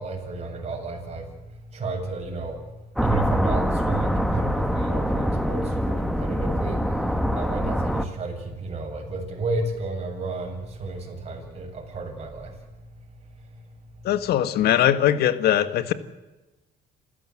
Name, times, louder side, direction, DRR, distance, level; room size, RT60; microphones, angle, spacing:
voice 1, 0.0-2.7 3.0-12.6 13.5-13.6, right 3 dB, 40° right, 1 dB, 7.6 m, -32 dB
sound 1, 3.0-8.0, equal, ahead, 1.8 m, -24 dB
voice 2, 14.0-15.9, left 11 dB, 70° left, 12 dB, 1.6 m, -21 dB
28.5 x 16.0 x 7.7 m, 1.1 s
cardioid pair, 110°, 17 cm